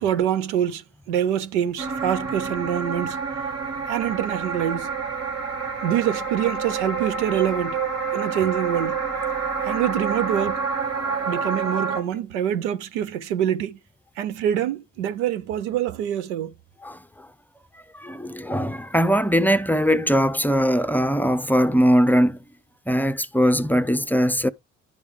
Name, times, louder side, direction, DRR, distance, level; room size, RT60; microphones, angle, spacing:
voice 1, 0.0-3.2 3.9-4.9 5.8-7.8 8.1-9.0 9.6-10.6 11.0-13.8 14.2-16.5, right 10 dB, 85° right, 0.6 m, -25 dB
sound 1, 1.8-12.0, right 5 dB, 45° right, 1.6 m, -28 dB
voice 2, 17.9-22.4 22.9-24.5, equal, 5° left, 0.6 m, -20 dB
11.0 x 4.7 x 3.5 m
hypercardioid pair, 50°, 34 cm